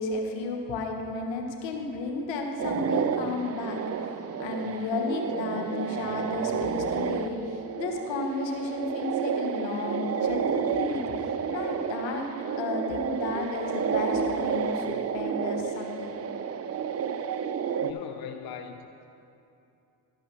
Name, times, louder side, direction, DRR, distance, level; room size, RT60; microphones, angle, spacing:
voice 1, 0.0-3.8 4.4-12.3 12.6-14.8 15.1-16.2, left 3 dB, 70° left, 2 dB, 1.3 m, -32 dB
sound 1, 2.6-17.9, right 7 dB, 35° right, 0.5 m, -30 dB
voice 2, 17.8-19.1, left 8 dB, 50° left, 7 dB, 0.6 m, -39 dB
12.5 x 5.6 x 5.9 m, 2.8 s
hypercardioid pair, 45°, 46 cm